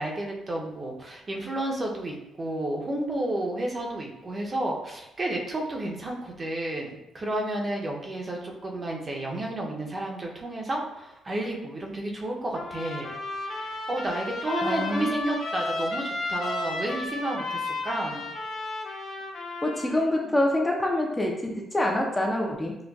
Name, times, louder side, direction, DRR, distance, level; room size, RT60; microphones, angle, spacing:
voice 1, 0.0-13.1 13.5-18.4 19.9-20.3, right 1 dB, 30° right, -1 dB, 0.6 m, -31 dB
Trumpet, 12.5-20.1, left 2 dB, 65° left, 0.6 m, -33 dB
voice 2, 14.6-15.1 19.6-22.8, left 1 dB, 15° left, 0 dB, 0.4 m, -26 dB
3.8 x 2.1 x 2.3 m, 0.89 s
cardioid pair, 90°, 0 cm